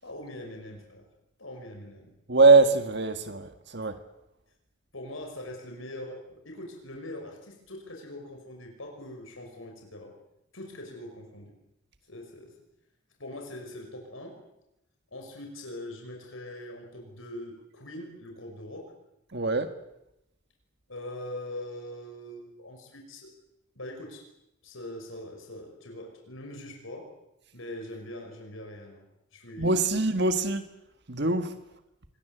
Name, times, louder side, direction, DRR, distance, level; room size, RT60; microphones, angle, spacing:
voice 1, 0.0-1.0 1.4-2.1 4.9-10.1 10.5-11.5 12.1-12.6 13.2-14.4 15.1-18.9 20.9-23.3 23.8-24.2 24.6-27.1 27.5-29.0 29.3-30.1, left 1 dB, 80° left, 5.8 m, -42 dB
voice 2, 2.3-3.9 19.3-19.7 29.6-30.7 31.1-31.5, right 3 dB, 55° right, 1.7 m, -22 dB
26.0 x 21.5 x 8.0 m
head